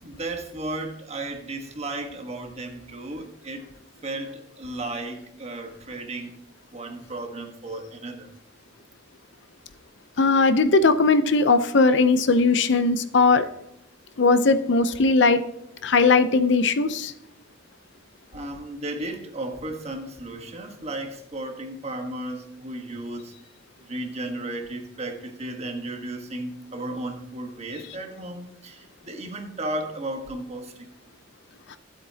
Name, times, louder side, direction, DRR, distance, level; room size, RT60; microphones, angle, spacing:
voice 1, 0.0-3.7 4.0-6.3 6.7-8.3 13.4-13.5 18.3-23.3 23.8-31.0, right 2 dB, 35° right, 4 dB, 1.3 m, -34 dB
voice 2, 10.2-13.4 14.2-15.4 15.8-17.1 31.7-31.8, left 3 dB, 65° left, 11 dB, 0.6 m, -19 dB
12.5 x 8.0 x 2.8 m, 0.80 s
head